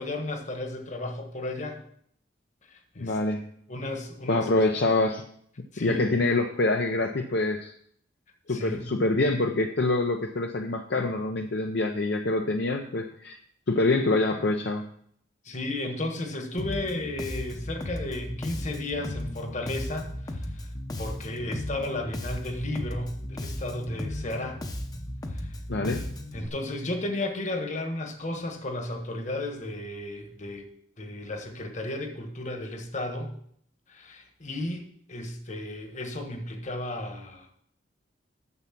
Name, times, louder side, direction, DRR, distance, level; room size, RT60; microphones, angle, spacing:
voice 1, 0.0-1.8 2.7-3.2 3.7-4.5 5.7-6.1 8.5-8.9 15.4-20.7 21.0-24.6 25.3-25.5 26.3-30.7 31.0-33.3 33.9-37.5, left 1 dB, 40° left, 5 dB, 1.3 m, -34 dB
voice 2, 3.0-3.5 4.3-5.2 5.8-7.7 8.5-13.4 13.7-14.9 25.7-26.1, left 2 dB, 55° left, 4 dB, 0.6 m, -25 dB
Bass guitar, 16.6-26.5, left 1 dB, 20° left, 0.8 m, -36 dB
9.6 x 7.1 x 5.8 m, 0.66 s
head